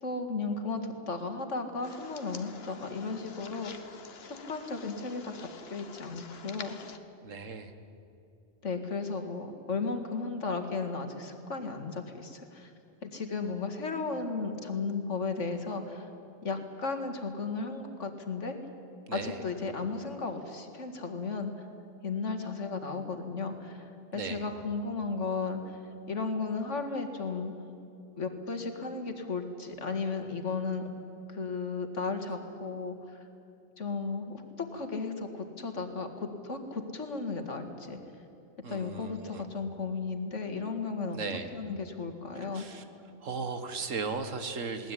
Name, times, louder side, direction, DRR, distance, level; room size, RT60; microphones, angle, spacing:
voice 1, 0.0-3.7 4.2-6.8 8.6-12.7 13.0-16.1 16.4-18.6 19.1-21.5 22.0-23.9 24.1-25.8 26.1-27.5 28.1-30.8 31.3-33.3 33.8-38.0 38.7-41.2 41.5-42.7, left 4 dB, 70° left, 5 dB, 2.4 m, -35 dB
sound 1, 1.8-7.0, left 5 dB, 55° left, 1.3 m, -48 dB
voice 2, 7.2-7.7 19.1-19.4 24.1-24.4 38.6-39.4 41.1-41.5 42.4-42.8 43.2-44.9, right 4 dB, 85° right, 9 dB, 1.8 m, -36 dB
20.5 x 19.0 x 9.9 m, 2.6 s
omnidirectional pair, 1.3 m